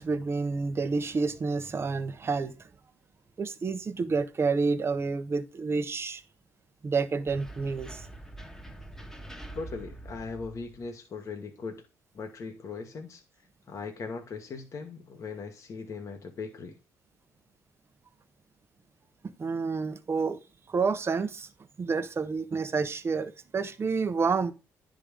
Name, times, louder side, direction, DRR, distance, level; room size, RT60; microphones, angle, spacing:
voice 1, 0.0-2.5 3.4-6.2 6.8-8.0 19.4-20.4 20.7-21.5 21.8-24.5, right 4 dB, 35° right, 0.9 m, -29 dB
sound 1, 7.3-10.9, right 1 dB, 5° left, 1.3 m, -44 dB
voice 2, 9.5-11.9 12.1-13.2 13.7-16.8, left 4 dB, 50° left, 1.3 m, -39 dB
10.0 x 3.8 x 5.0 m
supercardioid pair, 60°, 7 cm